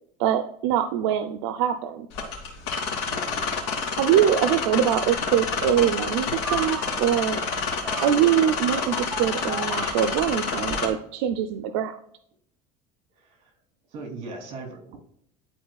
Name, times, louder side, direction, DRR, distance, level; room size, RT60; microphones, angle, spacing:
voice 1, 0.2-2.1 3.9-7.4 8.0-11.9, right 10 dB, 85° right, 9 dB, 0.6 m, -23 dB
sound 1, 2.1-10.9, left 5 dB, 85° left, 2.5 m, -28 dB
voice 2, 3.1-3.5 13.1-13.5 13.9-15.0, right 3 dB, 50° right, 3 dB, 2.7 m, -39 dB
sound 2, 6.4-10.6, right 3 dB, 5° right, 2.0 m, -38 dB
11.0 x 4.3 x 2.3 m, 0.66 s
cardioid pair, 150°, 14 cm